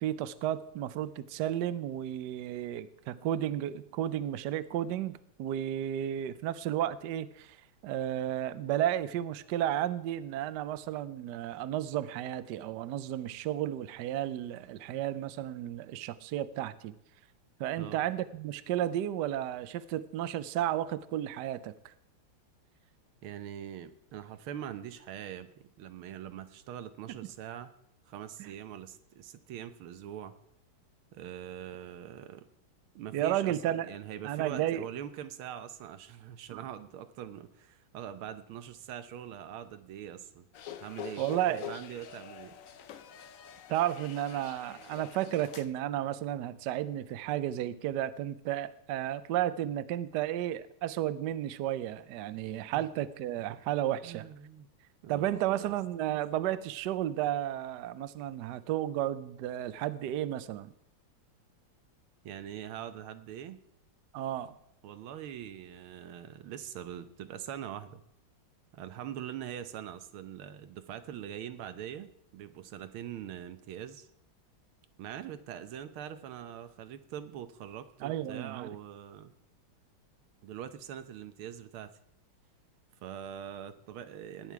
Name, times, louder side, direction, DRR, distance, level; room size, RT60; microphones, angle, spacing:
voice 1, 0.0-7.6 7.8-16.9 17.6-21.9 28.4-28.5 33.1-33.9 34.2-34.9 36.5-36.6 41.2-41.7 43.7-54.3 55.1-60.7 64.1-64.5 78.0-78.7, right 12 dB, 70° right, 15 dB, 1.1 m, -33 dB
voice 2, 23.2-27.7 28.1-30.3 31.1-32.5 33.0-33.6 33.8-40.5 40.8-42.6 52.7-52.9 54.0-54.7 55.0-55.7 62.2-63.6 64.8-68.0 68.7-74.1 75.0-79.3 80.4-81.9 83.0-84.5, right 10 dB, 85° right, 11 dB, 1.8 m, -43 dB
sound 1, 40.5-45.7, left 9 dB, 65° left, 0.8 m, -46 dB
18.5 x 9.2 x 4.7 m, 0.75 s
omnidirectional pair, 2.3 m